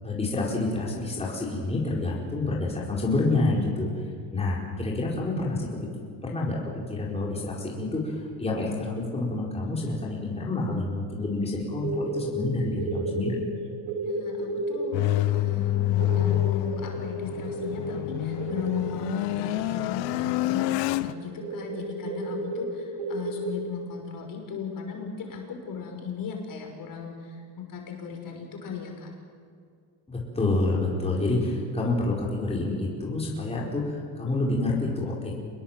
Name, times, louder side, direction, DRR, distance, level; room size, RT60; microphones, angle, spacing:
voice 1, 0.0-3.9 4.3-5.7 6.2-6.6 6.9-13.4 30.1-35.4, left 2 dB, 15° left, -4 dB, 4.8 m, -28 dB
sound 1, 11.8-12.3 12.8-20.2 20.6-20.7 21.0-21.1 21.4-23.5, right 3 dB, 70° right, 3.3 m, -33 dB
voice 2, 14.0-29.1, left 6 dB, 45° left, 2 dB, 5.9 m, -37 dB
sound 2, 14.9-21.1, left 15 dB, 75° left, 0.9 m, -27 dB
27.0 x 21.0 x 7.6 m, 2.2 s
cardioid pair, 130°, 44 cm